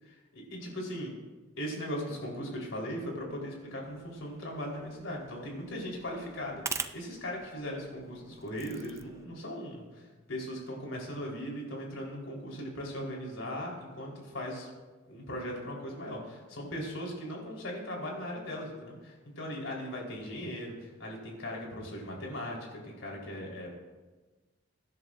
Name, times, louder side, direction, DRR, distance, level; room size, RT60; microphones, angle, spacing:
voice 1, 0.0-1.1 1.6-14.7 15.1-23.8, equal, 80° left, -2 dB, 3.9 m, -39 dB
sound 1, 3.8-9.3, right 5 dB, 15° right, 0.4 m, -44 dB
23.0 x 10.5 x 2.5 m, 1.3 s
head